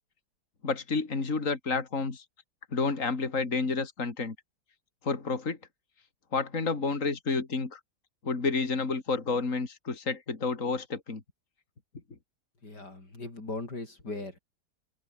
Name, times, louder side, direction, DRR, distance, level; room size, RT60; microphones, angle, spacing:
voice 1, 0.6-2.2 2.7-4.3 5.0-5.6 6.3-7.8 8.2-11.2, left 4 dB, 50° left, 3.3 m, -30 dB
voice 2, 12.6-14.4, left 2 dB, 90° left, 6.6 m, -39 dB
open air
omnidirectional pair, 1.7 m